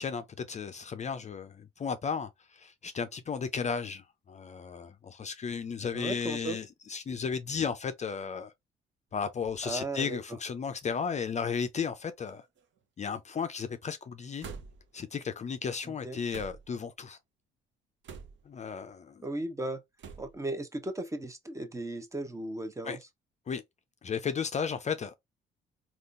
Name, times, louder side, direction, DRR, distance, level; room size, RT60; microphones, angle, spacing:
voice 1, 0.0-8.5 9.1-12.5 13.0-14.5 14.9-17.2 18.5-19.2 22.8-23.0 23.5-23.6 24.0-25.1, left 6 dB, 35° left, 0.4 m, -34 dB
voice 2, 5.9-6.6 9.6-10.2 15.8-16.2 19.2-19.8 20.2-23.0, right 2 dB, 15° right, 0.7 m, -36 dB
sound 1, 9.3-9.6 10.4-10.5 11.8-12.0 12.3-12.8 14.4-15.0 16.3-16.8 18.0-18.6 20.0-20.4, right 5 dB, 70° right, 0.7 m, -46 dB
3.6 x 2.4 x 2.4 m
cardioid pair, 90°, 20 cm